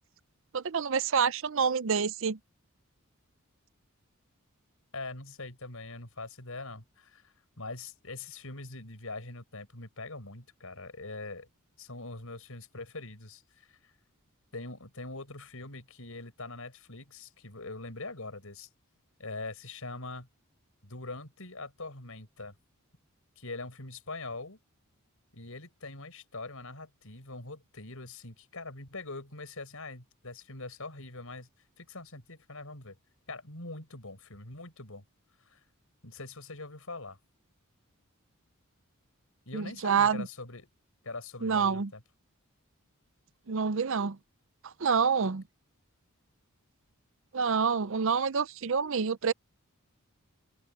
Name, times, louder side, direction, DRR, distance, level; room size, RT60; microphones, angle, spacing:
voice 1, 0.5-2.4 39.5-40.3 41.4-41.9 43.5-44.2 44.6-45.4 47.3-49.3, right 6 dB, 60° right, 0.6 m, -27 dB
voice 2, 4.9-11.5 11.8-13.9 14.5-18.7 19.2-20.3 20.8-22.5 23.4-24.6 25.3-31.5 31.8-33.0 33.3-35.0 35.5-35.6 36.0-37.2 39.5-40.7 41.0-42.0, left 3 dB, 70° left, 5.4 m, -43 dB
open air
head